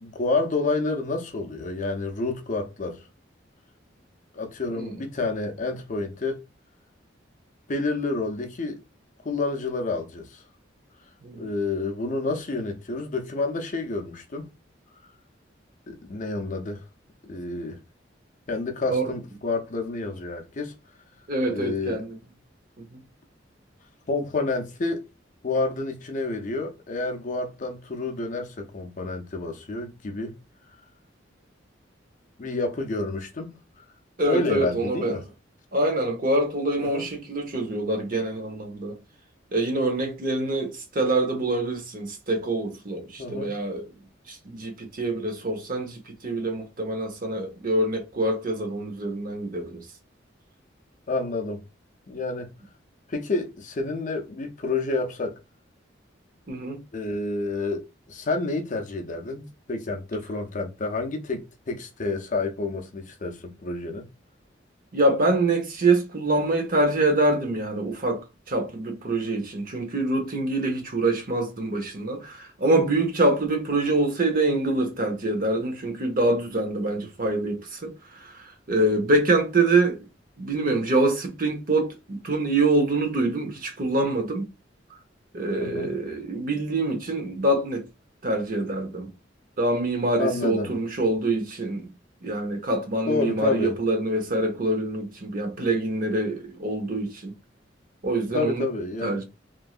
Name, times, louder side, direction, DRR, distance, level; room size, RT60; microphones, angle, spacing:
voice 1, 0.0-3.0 4.3-6.4 7.7-8.8 9.2-10.4 11.4-14.5 15.9-16.8 17.3-17.8 18.5-20.7 21.5-22.0 24.1-25.1 25.4-30.4 32.4-33.8 34.3-35.2 36.8-37.1 43.2-43.5 51.1-51.6 52.1-52.5 53.1-55.4 56.9-57.8 58.1-64.1 85.6-85.9 90.2-90.7 93.1-93.7 98.3-99.2, left 3 dB, 40° left, 0.5 m, -29 dB
voice 2, 21.3-22.2 22.8-23.0 34.2-35.2 35.7-39.0 39.5-43.8 44.3-49.9 56.5-56.8 64.9-80.1 80.4-84.5 85.3-87.9 88.2-89.1 89.6-91.8 92.2-97.4 98.0-98.6 99.0-99.2, right 2 dB, 45° right, 0.8 m, -25 dB
3.1 x 2.6 x 2.4 m
head